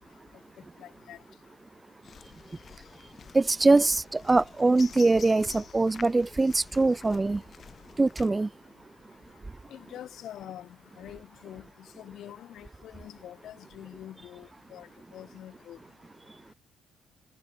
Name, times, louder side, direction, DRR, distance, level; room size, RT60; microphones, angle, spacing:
voice 1, 0.8-1.2 9.7-10.7 11.0-11.6 12.0-14.9 15.1-15.8, left 11 dB, 75° left, 1.7 m, -45 dB
sound 1, 2.0-8.3, left 7 dB, 50° left, 6.4 m, -49 dB
voice 2, 3.3-7.4 8.0-8.5, right 3 dB, 20° right, 0.3 m, -23 dB
cardioid pair, 90°, 0 cm